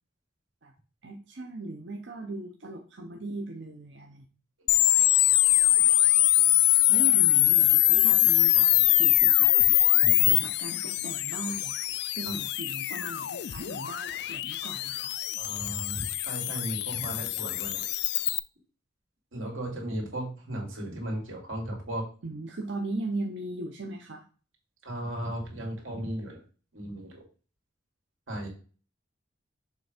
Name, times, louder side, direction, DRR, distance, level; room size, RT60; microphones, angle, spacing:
voice 1, 1.0-4.3 5.4-5.5 5.8-5.9 6.9-9.5 10.2-11.8 12.2-15.1 22.2-24.2, right 2 dB, 65° right, 3 dB, 0.7 m, -38 dB
sound 1, 4.7-18.4, left 16 dB, 55° left, 0.3 m, -23 dB
voice 2, 15.4-17.8 19.3-22.1 24.8-26.4 26.7-27.2 28.3-28.5, right 1 dB, 90° right, -1 dB, 2.6 m, -36 dB
6.6 x 3.4 x 5.0 m, 0.37 s
head